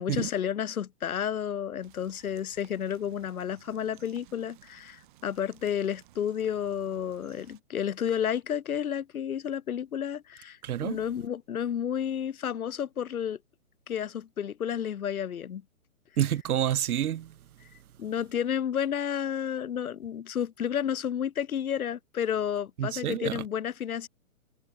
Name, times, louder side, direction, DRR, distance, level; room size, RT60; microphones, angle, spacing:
voice 1, 0.0-13.4 13.9-15.6 18.0-24.1, left 9 dB, 75° left, 1.6 m, -31 dB
sound 1, 1.8-7.6, right 16 dB, 35° right, 7.2 m, -58 dB
voice 2, 10.6-11.0 16.2-17.3 22.8-23.4, right 11 dB, 90° right, 0.8 m, -28 dB
hypercardioid pair, 165°, 43 cm